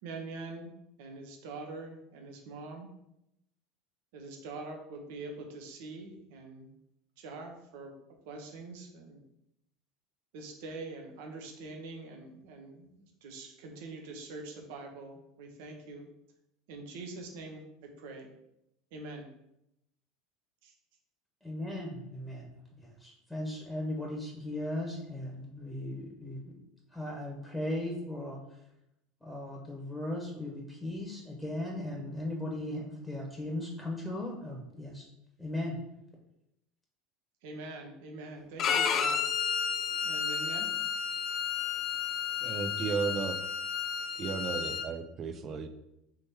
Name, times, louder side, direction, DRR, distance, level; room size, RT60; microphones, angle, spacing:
voice 1, 0.0-2.9 4.1-6.7 7.2-7.9 8.2-9.2 10.3-16.1 16.7-18.3 18.9-19.3 20.6-20.7 37.4-39.2 39.9-40.7, right 3 dB, 70° right, 2 dB, 0.9 m, -44 dB
voice 2, 21.4-22.5 22.8-26.5 26.9-28.6 29.2-35.0 35.4-35.8, left 1 dB, ahead, -2 dB, 1.2 m, -37 dB
Bowed string instrument, 38.6-44.9, left 7 dB, 45° left, 0.4 m, -32 dB
voice 3, 42.4-43.3 44.2-45.7, right 5 dB, 40° right, 8 dB, 0.5 m, -34 dB
3.7 x 3.1 x 4.4 m, 0.83 s
hypercardioid pair, 80°, 0 cm